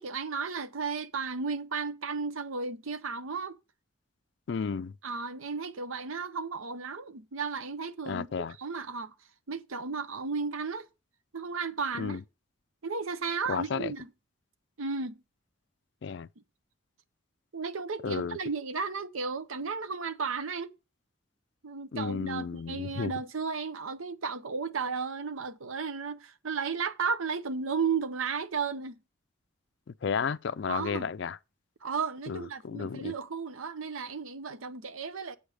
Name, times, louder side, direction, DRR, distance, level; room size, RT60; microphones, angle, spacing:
voice 1, 0.0-3.6 5.0-9.1 9.5-10.9 11.3-12.2 12.8-14.1 14.8-15.2 17.5-20.7 21.6-29.0 30.7-31.1 31.8-35.4, right 5 dB, 85° right, 0.8 m, -34 dB
voice 2, 4.5-4.9 8.1-8.5 12.0-12.2 13.5-13.9 16.0-16.3 18.0-18.4 21.9-23.1 30.0-31.4 32.3-33.1, left 6 dB, 55° left, 0.4 m, -32 dB
8.0 x 4.9 x 6.3 m
head